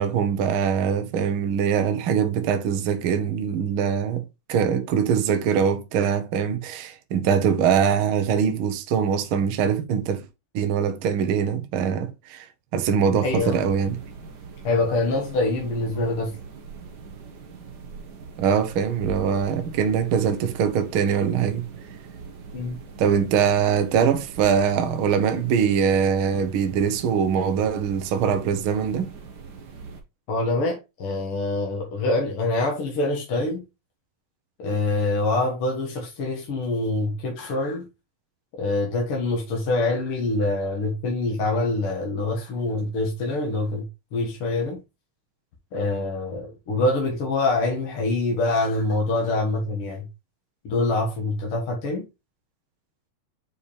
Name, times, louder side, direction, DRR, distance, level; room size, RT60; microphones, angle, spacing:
voice 1, 0.0-4.2 4.5-10.2 10.5-12.4 12.7-14.0 18.4-21.7 23.0-29.1, right 7 dB, 75° right, 1.2 m, -22 dB
voice 2, 13.2-13.6 14.6-16.4 22.5-22.8 30.3-33.6 34.6-37.8 38.6-44.8 45.7-50.1 50.6-52.1, left 2 dB, 50° left, 2.2 m, -25 dB
sound 1, 13.3-30.0, right 4 dB, 55° right, 1.2 m, -42 dB
7.2 x 4.9 x 3.2 m
omnidirectional pair, 3.6 m